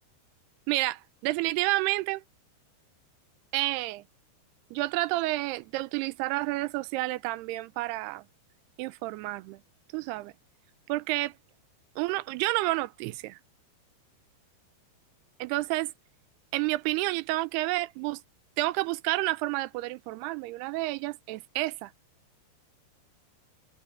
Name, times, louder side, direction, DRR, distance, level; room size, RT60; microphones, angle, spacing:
voice 1, 0.7-2.2 3.5-4.0 4.7-8.2 8.8-9.6 9.9-10.3 10.9-11.3 12.0-13.4 15.4-15.9 16.5-18.2 18.6-21.9, right 19 dB, 80° right, 2.5 m, -30 dB
omnidirectional pair, 5.0 m